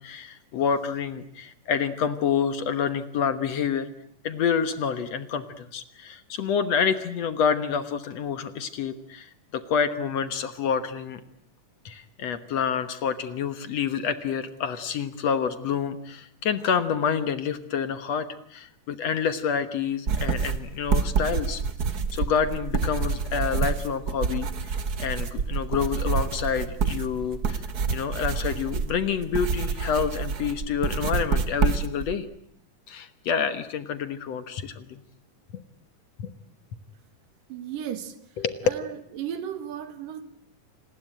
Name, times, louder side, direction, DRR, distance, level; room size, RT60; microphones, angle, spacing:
voice 1, 0.0-3.9 4.2-11.2 11.9-21.6 22.1-27.6 27.9-32.3 32.9-35.0 35.5-35.6 36.2-36.3 38.4-38.6, left 7 dB, 60° left, 11 dB, 2.1 m, -28 dB
sound 1, 20.1-32.1, right 5 dB, 50° right, 1.1 m, -27 dB
voice 2, 37.5-38.1 38.6-38.9 39.2-40.2, right 9 dB, 85° right, 10 dB, 3.4 m, -34 dB
28.0 x 20.0 x 9.1 m, 0.70 s
omnidirectional pair, 3.8 m